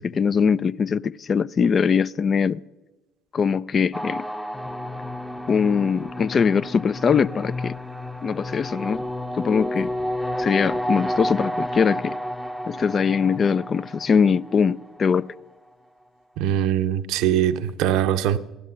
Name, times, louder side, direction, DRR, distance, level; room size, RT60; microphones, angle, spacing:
voice 1, 0.0-2.6 3.3-4.3 5.5-7.7 8.2-9.0 9.3-9.9 10.4-12.2 12.7-15.3, left 6 dB, 35° left, 0.4 m, -22 dB
sound 1, 3.9-15.1, left 1 dB, ahead, 0.7 m, -31 dB
voice 2, 16.4-18.4, right 11 dB, 60° right, 0.7 m, -22 dB
16.5 x 11.0 x 6.3 m
figure-of-eight pair, 55°, 0 cm